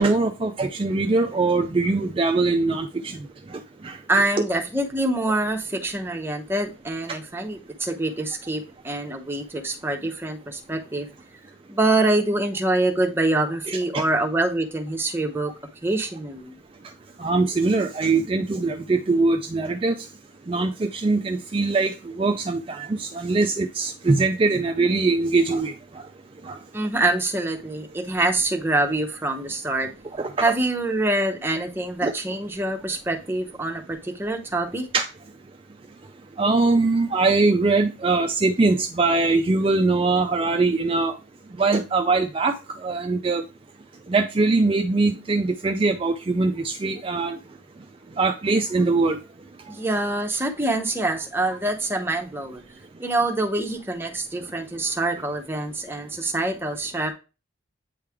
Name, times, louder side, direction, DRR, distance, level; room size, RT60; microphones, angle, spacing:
voice 1, 0.0-3.2 3.8-4.0 4.4-4.5 13.7-14.0 17.2-19.9 20.5-25.7 26.5-26.6 30.2-30.5 32.0-32.1 34.9-35.1 36.4-41.1 41.6-42.5 42.8-43.4 44.1-47.4 48.2-49.2, right 3 dB, 25° right, 0.3 m, -22 dB
voice 2, 4.1-11.1 11.7-15.5 15.8-16.6 26.7-29.9 30.4-34.9 49.7-52.6 53.0-57.1, right 2 dB, 10° right, 0.7 m, -25 dB
8.4 x 3.2 x 3.5 m
head